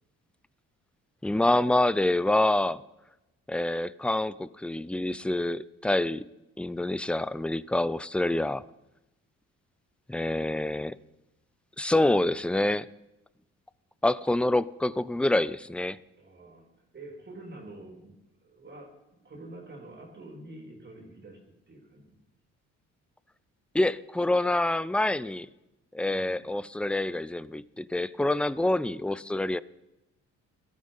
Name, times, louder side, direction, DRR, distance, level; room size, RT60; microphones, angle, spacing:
voice 1, 1.2-2.8 3.5-6.2 6.6-8.6 10.1-11.0 11.8-12.9 14.0-16.0 23.7-25.5 25.9-29.6, left 1 dB, 5° left, 18 dB, 0.5 m, -26 dB
voice 2, 16.2-16.7 16.9-22.2 26.1-26.5, right 2 dB, 35° right, 2 dB, 3.5 m, -47 dB
17.5 x 13.5 x 5.7 m, 0.95 s
cardioid pair, 90°, 30 cm